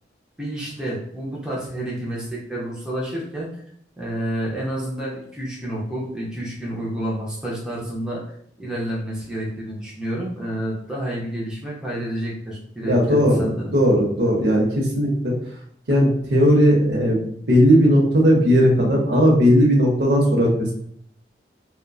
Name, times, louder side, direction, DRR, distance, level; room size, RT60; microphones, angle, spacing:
voice 1, 0.4-3.5 4.0-8.2 8.6-13.7, right 1 dB, 5° right, -6 dB, 0.5 m, -29 dB
voice 2, 12.8-15.3 15.9-20.7, equal, 75° right, -1 dB, 0.7 m, -17 dB
2.5 x 2.1 x 2.3 m, 0.65 s
head